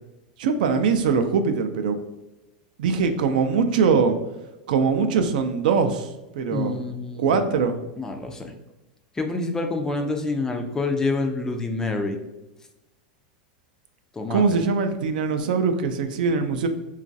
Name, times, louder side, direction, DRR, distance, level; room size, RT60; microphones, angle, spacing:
voice 1, 0.4-2.0 2.8-4.2 4.7-6.8 7.2-7.8 14.3-16.7, right 5 dB, 75° right, 8 dB, 0.3 m, -22 dB
voice 2, 6.5-7.5 8.0-8.5 9.2-12.2 14.1-14.6, left 3 dB, 10° left, 5 dB, 0.3 m, -27 dB
3.0 x 2.3 x 2.6 m, 1.0 s
supercardioid pair, 120°, 5 cm